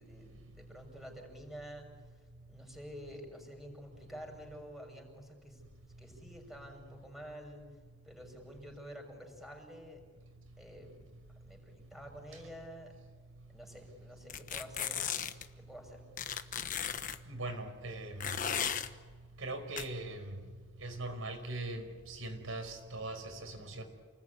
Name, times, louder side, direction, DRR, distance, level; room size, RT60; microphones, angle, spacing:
voice 1, 0.0-1.9 2.1-5.6 6.0-7.6 8.0-10.0 10.6-11.0 11.3-12.9 13.5-15.1 15.5-16.0, equal, ahead, 2 dB, 6.4 m, -49 dB
sound 1, 14.3-15.5 16.2-17.2 18.2-18.9 19.8-19.9, left 8 dB, 40° left, 1.2 m, -35 dB
voice 2, 17.3-18.3 19.4-20.2 20.8-23.8, right 2 dB, 75° right, 6 dB, 5.3 m, -40 dB
29.5 x 20.5 x 9.7 m, 1.5 s
head